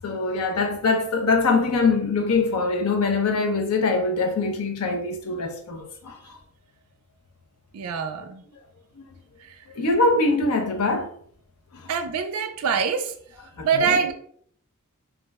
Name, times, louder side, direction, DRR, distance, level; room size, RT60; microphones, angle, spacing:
voice 1, 0.0-6.4 9.0-9.1 9.7-11.1 11.7-11.9 13.6-14.0, left 3 dB, 85° left, 0.5 m, -23 dB
voice 2, 7.7-8.4 11.9-13.1 13.6-14.1, right 6 dB, 80° right, 0.3 m, -24 dB
2.3 x 2.0 x 3.3 m
head